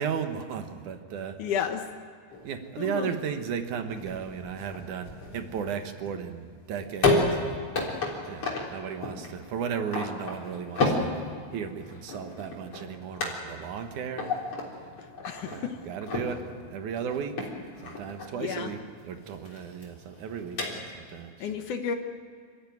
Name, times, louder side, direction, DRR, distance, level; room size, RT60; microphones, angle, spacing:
voice 1, 0.0-1.4 2.4-11.1 11.5-14.3 14.7-14.9 15.4-17.5 17.8-21.5, right 7 dB, 65° right, 7 dB, 2.2 m, -35 dB
voice 2, 1.4-1.9 2.8-3.1 15.2-15.8 18.4-18.7 21.4-22.0, left 7 dB, 65° left, 6 dB, 2.2 m, -31 dB
sound 1, 2.3-21.2, left 3 dB, 40° left, 4.4 m, -33 dB
27.0 x 14.5 x 9.4 m, 2.1 s
omnidirectional pair, 4.7 m